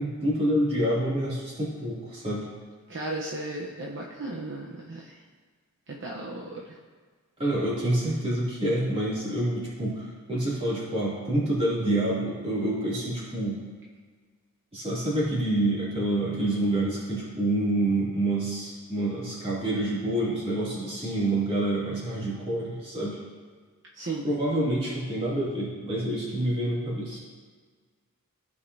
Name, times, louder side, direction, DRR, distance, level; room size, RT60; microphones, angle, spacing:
voice 1, 0.0-2.5 6.5-6.6 7.4-13.6 14.7-23.2 24.2-27.2, right 1 dB, 25° right, -7 dB, 2.5 m, -27 dB
voice 2, 2.9-5.2 5.9-6.8 23.9-24.2, right 2 dB, 55° right, -3 dB, 0.8 m, -35 dB
15.0 x 5.3 x 2.7 m, 1.5 s
head